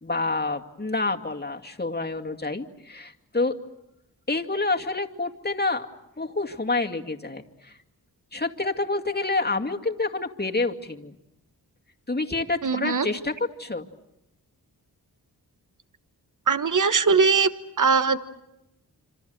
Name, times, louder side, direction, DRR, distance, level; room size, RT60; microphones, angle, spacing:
voice 1, 0.0-3.6 4.3-5.9 6.2-7.8 8.3-11.1 12.1-13.3 13.6-13.9, left 3 dB, 25° left, 3 dB, 2.3 m, -28 dB
voice 2, 12.6-13.1 16.5-17.5 17.8-18.2, right 5 dB, 50° right, 11 dB, 1.3 m, -20 dB
27.0 x 26.5 x 8.0 m, 0.88 s
cardioid pair, 50°, 39 cm